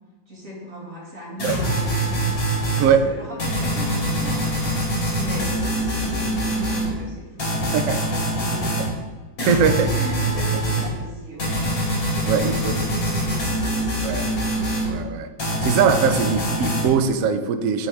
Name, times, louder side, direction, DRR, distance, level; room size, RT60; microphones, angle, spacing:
voice 1, 0.3-2.6 2.8-4.9 5.1-8.9 9.7-11.7 12.1-13.5, equal, 45° right, -6 dB, 2.7 m, -37 dB
sound 1, 1.4-2.9 3.4-6.9 7.4-8.9 9.4-10.9 11.4-14.9 15.4-16.9, right 1 dB, 90° left, 3.2 m, -24 dB
voice 2, 9.5-9.9 12.3-12.7 14.0-14.3 14.9-15.3 15.6-17.9, right 6 dB, 70° right, 8 dB, 0.8 m, -21 dB
11.0 x 4.1 x 3.3 m, 1.2 s
omnidirectional pair, 2.1 m